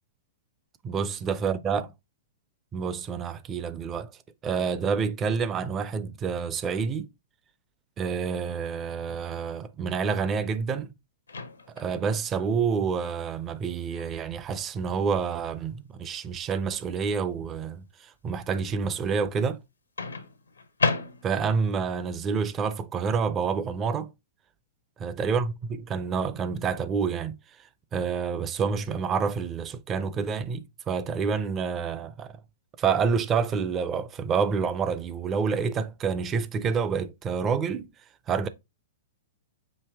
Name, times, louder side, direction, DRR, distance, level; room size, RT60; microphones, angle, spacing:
voice 1, 0.8-1.9 2.7-4.1 4.4-7.1 8.0-10.9 11.8-19.6 21.2-24.1 25.0-27.4 27.9-32.4 32.8-37.9 38.3-38.5, right 6 dB, 25° right, 0.5 m, -28 dB
Microwave oven, 11.3-12.0 13.9-14.2 20.0-21.6, left 4 dB, 80° left, 0.7 m, -31 dB
5.3 x 2.7 x 3.3 m
figure-of-eight pair, 105°, 0 cm